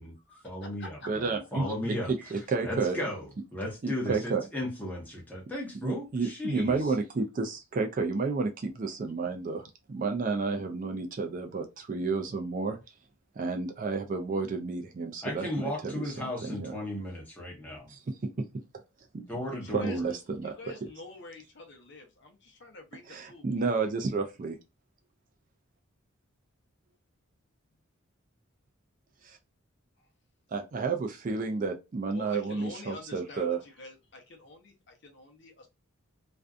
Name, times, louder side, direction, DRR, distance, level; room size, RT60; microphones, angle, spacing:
voice 1, 0.4-2.1 2.6-3.2 3.5-6.8 15.2-17.9 19.3-20.0, left 1 dB, 10° left, 0.8 m, -35 dB
voice 2, 1.1-1.7 2.1-3.0 3.8-4.4 5.8-12.8 13.4-16.0 16.4-16.8 17.9-18.5 19.1-19.3 19.7-20.9 23.1-24.6 29.2-29.4 30.5-33.6, right 4 dB, 40° right, 0.3 m, -31 dB
voice 3, 19.5-20.2 20.6-23.7 32.1-35.7, left 2 dB, 55° left, 0.7 m, -47 dB
2.5 x 2.2 x 2.4 m
head